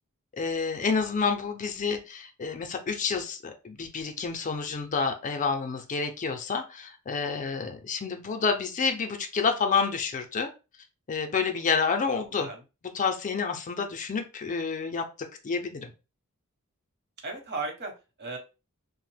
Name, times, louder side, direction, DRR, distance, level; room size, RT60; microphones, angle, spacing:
voice 1, 0.4-10.5 11.1-12.5 12.9-15.0 15.4-15.9, left 5 dB, 35° left, 6 dB, 0.4 m, -29 dB
voice 2, 12.2-12.6 17.2-18.4, right 3 dB, 50° right, 3 dB, 0.9 m, -36 dB
2.9 x 2.0 x 3.2 m, 0.29 s
head